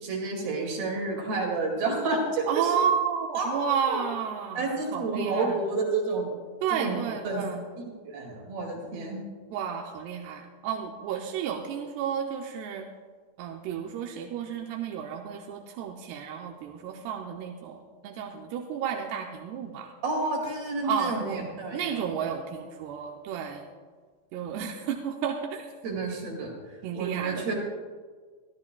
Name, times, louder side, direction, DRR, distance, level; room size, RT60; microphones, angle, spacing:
voice 1, 0.0-2.7 3.3-4.0 4.6-6.3 6.7-7.4 7.8-9.2 20.0-22.0 25.8-26.6 26.9-27.6, right 3 dB, 60° right, 0 dB, 3.9 m, -30 dB
voice 2, 2.5-4.6 4.9-5.6 6.6-7.6 9.5-12.8 13.4-19.9 20.8-21.5 21.7-23.6 24.3-25.7 26.8-27.5, right 8 dB, 80° right, 2 dB, 2.6 m, -32 dB
24.5 x 12.0 x 2.3 m, 1.5 s
omnidirectional pair, 5.2 m